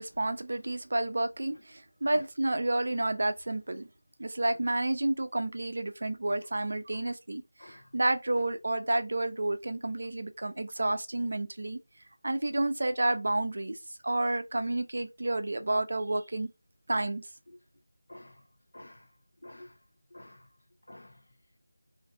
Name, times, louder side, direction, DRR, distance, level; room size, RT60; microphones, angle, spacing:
voice 1, 0.0-3.9 4.2-11.8 12.2-13.8 14.0-16.5 16.9-17.2, right 2 dB, 60° right, 0.5 m, -30 dB
voice 2, 18.7-19.0 19.4-19.7 20.1-20.4 20.9-21.1, left 1 dB, 60° left, 0.7 m, -49 dB
2.5 x 2.4 x 3.6 m
figure-of-eight pair, 175°, 0 cm